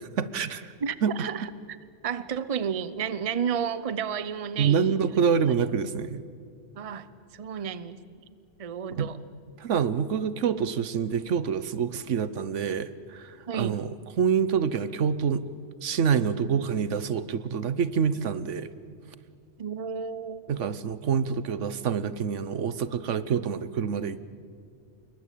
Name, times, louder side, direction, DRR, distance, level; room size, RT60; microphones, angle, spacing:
voice 1, 0.0-0.7 1.0-1.1 4.6-6.2 8.9-9.1 9.6-13.9 14.2-15.4 15.8-18.7 20.5-24.3, right 7 dB, 80° right, 15 dB, 1.2 m, -26 dB
voice 2, 0.8-1.5 2.0-5.2 5.5-5.6 6.7-7.1 7.3-8.2 8.6-9.2 13.5-13.8 19.6-20.7, right 7 dB, 35° right, 15 dB, 0.8 m, -32 dB
26.5 x 22.5 x 8.4 m, 2.4 s
omnidirectional pair, 1.2 m